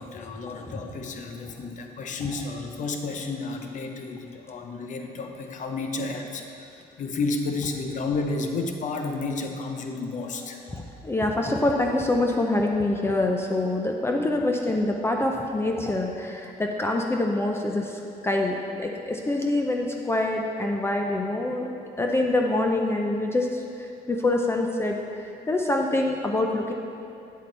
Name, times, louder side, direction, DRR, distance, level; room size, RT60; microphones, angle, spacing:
voice 1, 0.0-6.4 6.7-10.6, left 3 dB, 50° left, 4 dB, 0.8 m, -31 dB
voice 2, 10.7-21.7 22.0-25.0 25.5-26.7, left 2 dB, 15° left, 1 dB, 0.5 m, -25 dB
8.3 x 8.1 x 3.3 m, 2.6 s
cardioid pair, 110°, 17 cm